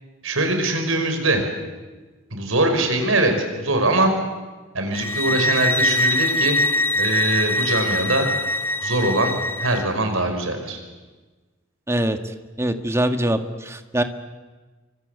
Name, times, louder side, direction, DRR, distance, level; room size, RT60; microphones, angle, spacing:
voice 1, 0.2-1.4 2.3-4.1 4.7-6.6 6.9-8.3 8.8-9.3 9.6-10.8, right 2 dB, 75° right, 5 dB, 5.6 m, -22 dB
sound 1, 4.9-9.8, left 1 dB, 10° left, 0.9 m, -23 dB
voice 2, 11.9-12.2 12.6-14.0, right 1 dB, 15° right, 7 dB, 1.8 m, -23 dB
28.5 x 25.0 x 8.2 m, 1.3 s
head